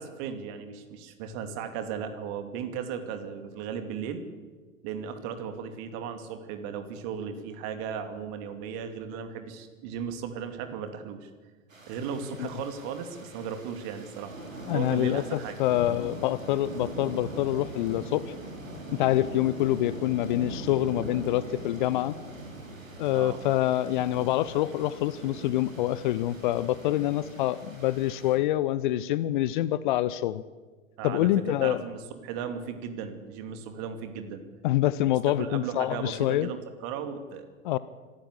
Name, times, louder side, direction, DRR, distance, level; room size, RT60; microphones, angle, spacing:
voice 1, 0.0-4.2 4.8-11.3 11.9-14.4 14.7-15.6 23.1-23.4 31.0-34.4 35.3-37.5, right 7 dB, 40° right, 7 dB, 2.7 m, -36 dB
sound 1, 11.7-28.4, right 1 dB, 75° right, 5.3 m, -41 dB
voice 2, 14.7-18.3 19.0-22.1 23.0-30.4 31.0-31.8 34.6-36.5 37.6-37.8, left 14 dB, 40° left, 17 dB, 0.6 m, -26 dB
26.0 x 14.0 x 8.2 m, 1.4 s
figure-of-eight pair, 100°, 40 cm